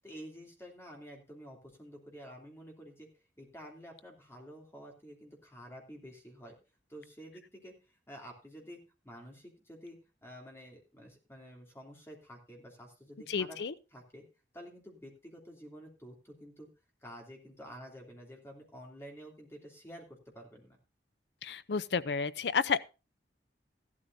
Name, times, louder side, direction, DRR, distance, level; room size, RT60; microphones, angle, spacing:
voice 1, 0.0-3.1 3.4-6.5 6.9-7.7 8.1-13.6 13.9-14.2 14.5-16.7 17.0-20.8, equal, 15° left, 2.9 m, -50 dB
voice 2, 13.3-13.7 21.4-23.0, left 5 dB, 70° left, 0.5 m, -31 dB
15.5 x 12.0 x 2.7 m
head